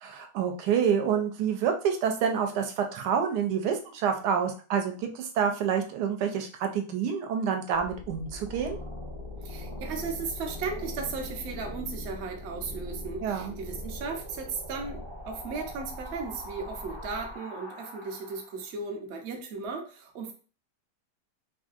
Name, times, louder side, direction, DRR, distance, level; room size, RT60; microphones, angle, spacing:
voice 1, 0.0-8.8 13.2-13.5, right 7 dB, 80° right, 4 dB, 1.2 m, -28 dB
sound 1, 7.7-18.7, left 1 dB, 35° right, 0.4 m, -41 dB
voice 2, 9.4-20.3, right 4 dB, 60° right, 2 dB, 0.7 m, -36 dB
3.1 x 2.6 x 2.4 m, 0.38 s
omnidirectional pair, 1.8 m